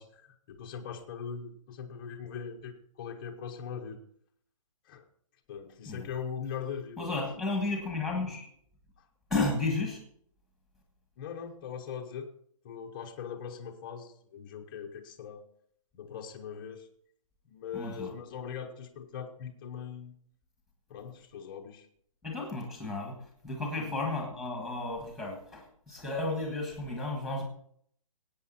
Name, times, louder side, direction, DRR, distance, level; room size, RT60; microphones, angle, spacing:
voice 1, 0.0-4.0 4.9-5.0 5.5-7.3 11.2-12.3 12.6-15.5 15.9-16.9 17.5-20.2 20.9-21.9 23.8-24.1, left 7 dB, 15° left, 1 dB, 0.8 m, -41 dB
voice 2, 7.0-8.5 9.3-10.0 17.7-18.1 22.2-23.2 23.4-27.4, left 2 dB, ahead, 0 dB, 1.5 m, -33 dB
17.5 x 8.6 x 4.2 m, 0.64 s
hypercardioid pair, 175°, 18 cm